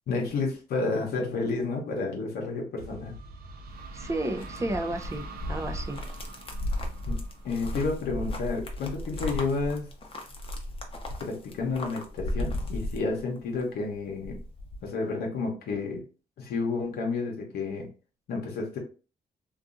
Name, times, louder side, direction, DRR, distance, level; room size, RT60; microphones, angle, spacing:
voice 1, 0.1-3.1 7.1-7.2 7.4-9.9 11.2-14.4 14.8-16.0 16.4-17.9 18.3-18.8, left 3 dB, 80° left, 0 dB, 0.8 m, -30 dB
sound 1, 2.8-8.4, right 3 dB, 75° right, 0.5 m, -44 dB
sound 2, 3.7-13.6 13.9-14.9, left 1 dB, 35° left, 0.6 m, -35 dB
voice 2, 3.9-6.0, right 1 dB, 20° right, 8 dB, 0.4 m, -32 dB
2.6 x 2.3 x 2.4 m, 0.36 s
cardioid pair, 80°, 16 cm